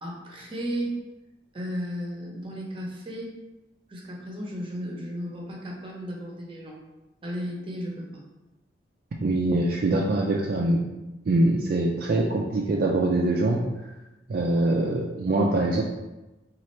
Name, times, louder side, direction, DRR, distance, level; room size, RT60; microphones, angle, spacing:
voice 1, 0.0-1.0 1.5-3.3 3.9-6.8 7.2-8.2, equal, 30° right, -1 dB, 0.7 m, -34 dB
voice 2, 9.2-10.8 11.3-13.6 14.3-15.8, right 2 dB, 50° right, -2 dB, 0.3 m, -23 dB
4.2 x 2.4 x 3.1 m, 1.0 s
head